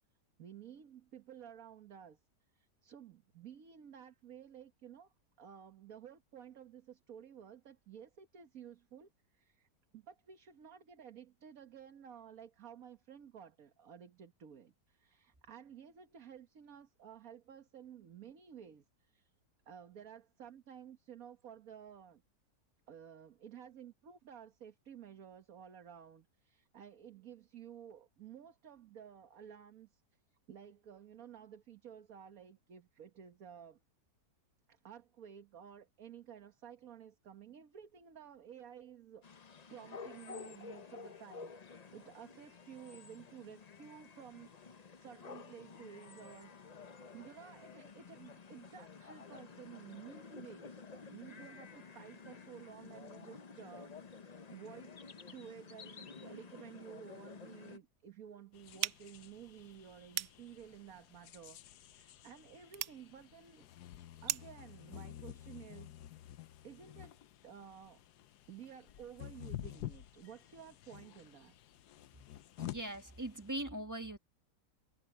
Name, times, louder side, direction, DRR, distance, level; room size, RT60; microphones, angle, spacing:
voice 1, 0.4-2.2 2.5-5.1 5.4-9.7 9.9-19.3 19.6-22.2 22.9-30.0 30.5-33.8 34.7-39.2 39.7-46.5 47.1-50.8 51.1-55.0 55.3-63.7 64.2-65.9 66.6-68.0 68.5-71.6, right 8 dB, 60° right, 1.7 m, -53 dB
sound 1, 39.2-57.8, left 5 dB, 40° left, 0.6 m, -52 dB
sound 2, 58.5-73.6, left 13 dB, 75° left, 1.3 m, -51 dB
sound 3, 58.8-64.6, right 13 dB, 80° right, 0.6 m, -43 dB
voice 2, 72.6-74.2, right 1 dB, 10° right, 1.1 m, -41 dB
omnidirectional pair, 1.8 m